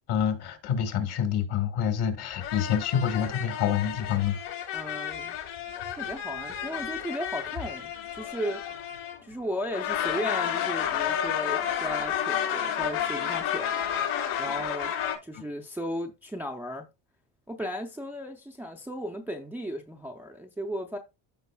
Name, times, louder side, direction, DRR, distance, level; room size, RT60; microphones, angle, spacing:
voice 1, 0.1-4.4, left 8 dB, 55° left, 1.7 m, -27 dB
sound 1, 2.4-9.3 9.7-15.1, left 9 dB, 90° left, 2.9 m, -31 dB
voice 2, 4.7-5.4 5.9-8.6 9.2-13.8 14.4-14.9 15.2-16.9 17.5-21.0, equal, 5° right, 0.4 m, -35 dB
14.0 x 4.7 x 2.2 m
cardioid pair, 160°, 46 cm